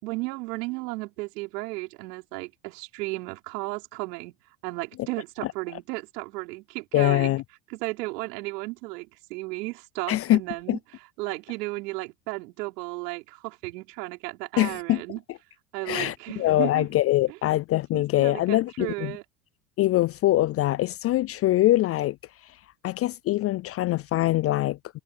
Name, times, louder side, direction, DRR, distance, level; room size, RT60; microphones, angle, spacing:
voice 1, 0.0-4.4 4.6-7.4 7.7-10.8 11.2-15.2 15.7-16.9 17.3-17.4 17.9-19.2, right 23 dB, 75° right, 5.4 m, -34 dB
voice 2, 6.9-7.4 10.1-10.4 10.7-10.8 14.6-15.0 15.9-19.1 19.8-22.2 22.8-25.0, left 15 dB, 35° left, 0.4 m, -23 dB
hypercardioid pair, 95°, 48 cm